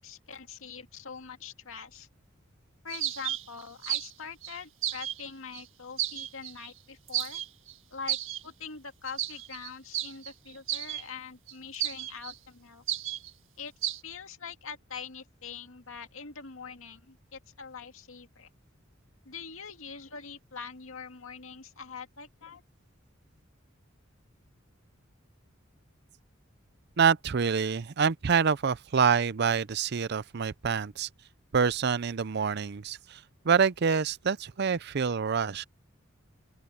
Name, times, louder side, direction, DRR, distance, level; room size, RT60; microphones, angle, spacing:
voice 1, 0.0-2.1 2.8-7.4 7.9-8.2 8.4-12.8 13.6-13.7 14.0-18.5 19.2-22.6, left 6 dB, 85° left, 2.2 m, -43 dB
sound 1, 2.9-4.1 4.4-5.2 5.5-5.6 6.0-6.7 7.1-7.7 8.1-8.4 9.1-11.0 11.5-12.3 12.9-13.3 13.8-14.0, right 12 dB, 70° right, 1.9 m, -33 dB
voice 2, 27.0-31.1 31.5-33.2 33.4-35.6, right 6 dB, 55° right, 0.5 m, -26 dB
open air
head